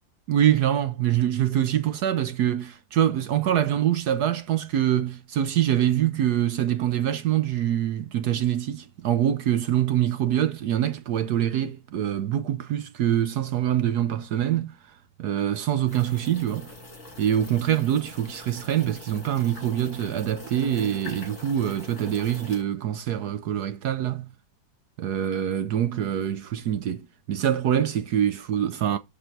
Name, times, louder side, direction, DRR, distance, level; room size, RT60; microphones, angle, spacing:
voice 1, 0.3-14.7 15.2-16.7 17.2-24.3 25.0-29.0, right 10 dB, 70° right, 1.0 m, -25 dB
sound 1, 15.9-22.6, left 1 dB, 45° left, 5.7 m, -43 dB
12.0 x 4.3 x 4.5 m
omnidirectional pair, 2.3 m